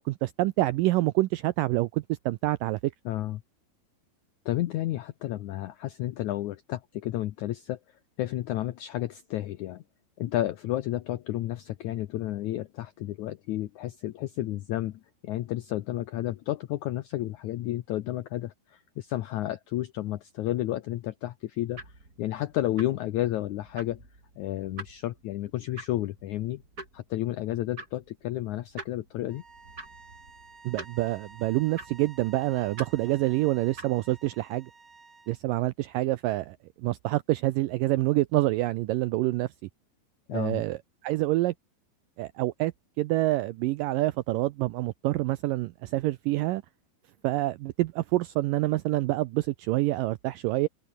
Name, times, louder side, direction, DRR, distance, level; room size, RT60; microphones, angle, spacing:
voice 1, 0.0-2.9 30.6-34.7 35.3-36.6 36.8-39.5 40.3-41.5 42.2-42.7 43.0-46.6 47.2-50.7, right 18 dB, 85° right, 1.9 m, -27 dB
voice 2, 3.1-3.4 4.5-7.8 8.2-9.8 10.2-24.0 24.4-26.6 26.9-29.4 40.3-40.6, left 14 dB, 80° left, 1.7 m, -31 dB
sound 1, 21.7-34.3, right 2 dB, 20° right, 5.6 m, -48 dB
sound 2, 29.3-35.4, right 4 dB, 45° right, 6.9 m, -52 dB
omnidirectional pair, 4.6 m